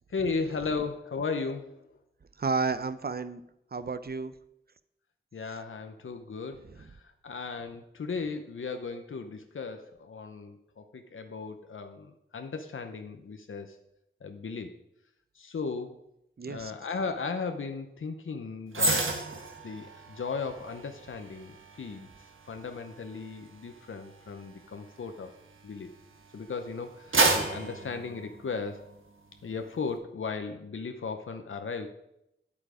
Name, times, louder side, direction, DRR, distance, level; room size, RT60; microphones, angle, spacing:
voice 1, 0.1-1.9 5.3-13.8 14.2-14.7 15.3-15.9 16.4-19.1 19.6-22.1 22.5-25.3 25.6-25.9 26.3-28.9 29.4-31.9, left 4 dB, 90° left, 6 dB, 0.8 m, -36 dB
voice 2, 2.4-3.4 3.7-4.3 6.6-6.9 16.4-16.7, right 4 dB, 50° right, 13 dB, 0.7 m, -32 dB
sound 1, 18.7-26.1 26.6-29.0 29.3-29.5, right 3 dB, 85° right, 1.6 m, -32 dB
8.9 x 8.3 x 5.0 m, 0.81 s
wide cardioid pair, 70°, 20 cm